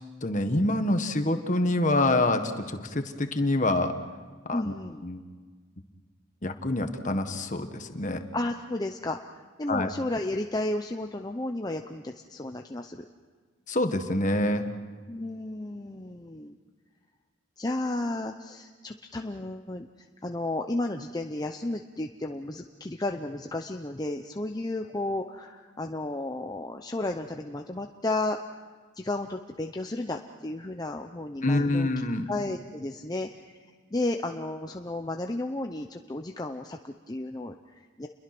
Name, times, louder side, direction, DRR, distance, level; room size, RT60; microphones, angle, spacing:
voice 1, 0.2-3.9 4.5-4.7 5.0-5.2 6.4-8.2 9.7-9.9 13.7-14.7 31.4-32.3, left 2 dB, 40° left, 7 dB, 1.6 m, -26 dB
voice 2, 4.5-5.0 8.3-9.2 9.6-13.1 15.1-16.6 17.6-19.9 20.2-28.4 29.0-31.9 32.3-33.3 33.9-38.1, left 2 dB, 20° left, 4 dB, 0.7 m, -33 dB
29.0 x 22.5 x 6.1 m, 1.5 s
head